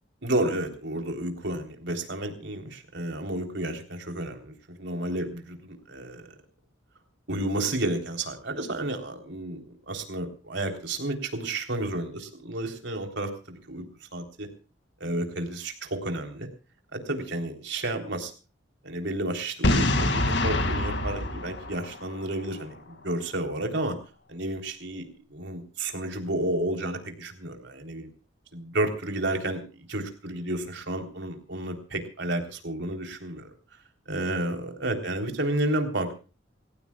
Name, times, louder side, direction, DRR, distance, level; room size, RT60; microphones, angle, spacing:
voice 1, 0.2-6.3 7.3-14.5 15.0-16.5 16.9-18.3 18.8-24.0 24.3-28.1 28.5-33.5 34.1-36.2, right 1 dB, 65° right, 4 dB, 3.6 m, -31 dB
Boom, 19.6-22.5, left 1 dB, 65° left, 2.3 m, -25 dB
27.5 x 15.5 x 2.4 m, 0.35 s
head